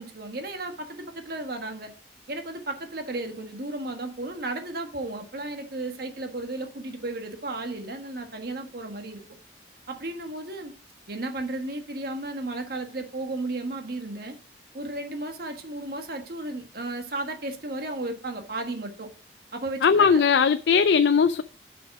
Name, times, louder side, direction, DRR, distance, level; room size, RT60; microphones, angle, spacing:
voice 1, 0.0-1.9 2.3-9.2 9.9-10.7 11.1-14.3 14.7-19.1 19.5-20.2, right 2 dB, 60° right, 1.5 m, -34 dB
voice 2, 19.8-21.4, left 6 dB, 80° left, 0.4 m, -19 dB
8.0 x 5.9 x 4.7 m
head